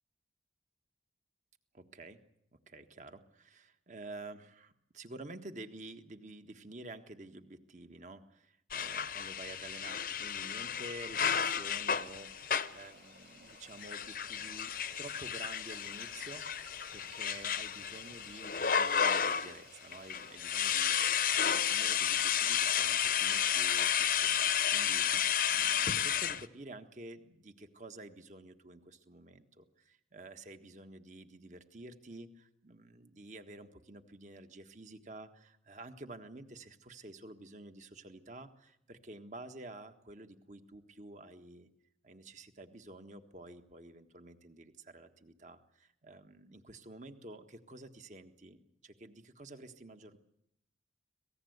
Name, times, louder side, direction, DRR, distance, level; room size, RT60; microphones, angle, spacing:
voice 1, 1.7-2.2 2.7-16.4 16.9-41.7 42.0-50.2, right 2 dB, 40° right, 8 dB, 1.6 m, -50 dB
sound 1, 8.7-12.9 13.7-19.6 19.9-26.5, left 8 dB, 50° left, 0.8 m, -32 dB
Stream, 11.6-23.6, right 4 dB, 70° right, 3.5 m, -59 dB
26.0 x 18.5 x 8.1 m, 0.76 s
head